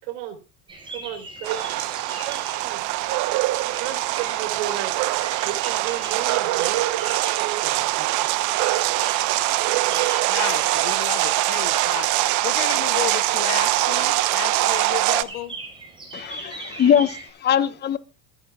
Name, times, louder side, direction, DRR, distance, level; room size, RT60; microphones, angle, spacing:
voice 1, 0.0-0.4 0.9-1.8 2.2-2.8 3.3-6.8 7.6-8.4, right 11 dB, 75° right, 4.3 m, -34 dB
sound 1, 0.7-17.3, right 2 dB, 15° right, 5.6 m, -41 dB
sound 2, 1.4-15.2, right 16 dB, 50° right, 1.0 m, -23 dB
voice 2, 9.8-15.5, left 18 dB, 65° left, 1.1 m, -33 dB
voice 3, 16.1-18.0, left 8 dB, 25° left, 1.1 m, -21 dB
26.0 x 10.5 x 2.4 m
supercardioid pair, 140°, 38 cm